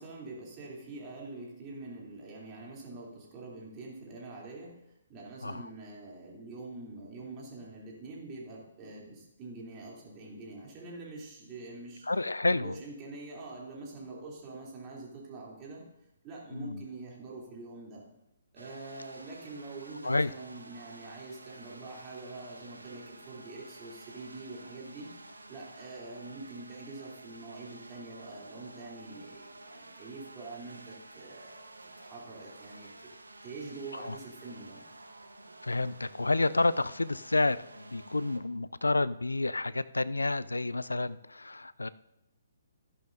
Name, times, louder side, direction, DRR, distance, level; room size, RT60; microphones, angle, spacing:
voice 1, 0.0-12.1 12.5-15.8 16.2-18.0 18.5-31.6 32.0-32.9 33.4-34.8, right 3 dB, 25° right, -3 dB, 2.9 m, -45 dB
voice 2, 12.1-12.8 16.5-16.8 20.0-20.3 33.9-34.2 35.6-41.9, left 2 dB, 80° left, 17 dB, 0.3 m, -30 dB
sound 1, 18.6-38.4, right 2 dB, 80° right, 1.0 m, -51 dB
13.5 x 11.0 x 2.6 m, 0.88 s
figure-of-eight pair, 130°, 0 cm